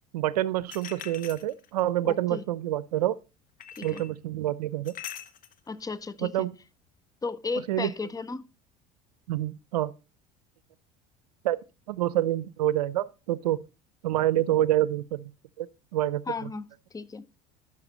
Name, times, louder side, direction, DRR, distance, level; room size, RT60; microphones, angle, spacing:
voice 1, 0.1-3.1 3.8-4.9 6.2-6.5 7.7-7.9 9.3-9.9 11.4-11.6 11.9-13.6 14.0-15.3 15.6-15.7 15.9-16.2, right 13 dB, 90° right, 0.5 m, -27 dB
sound 1, 0.7-1.9 3.6-4.1 4.8-5.6, left 9 dB, 45° left, 1.0 m, -42 dB
voice 2, 2.0-2.4 3.8-4.0 5.7-6.5 7.2-8.5 16.3-16.7 16.9-17.3, left 4 dB, 20° left, 0.5 m, -34 dB
10.5 x 5.9 x 3.8 m
hypercardioid pair, 80°, 20 cm